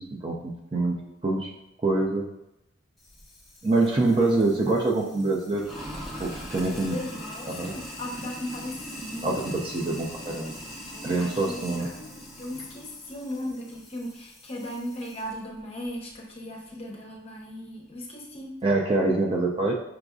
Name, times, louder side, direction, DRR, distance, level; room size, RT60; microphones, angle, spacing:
voice 1, 0.0-1.5 1.8-2.2 3.6-5.7 6.2-7.0 7.5-7.7 9.2-10.6 11.0-11.9 18.6-19.7, right 2 dB, 25° right, -1 dB, 0.4 m, -25 dB
Sink (filling or washing), 3.0-15.3, equal, ahead, 0.9 m, -41 dB
voice 2, 6.7-9.6 10.9-18.6, left 1 dB, 30° left, -1 dB, 0.7 m, -37 dB
5.8 x 2.5 x 2.3 m, 0.88 s
head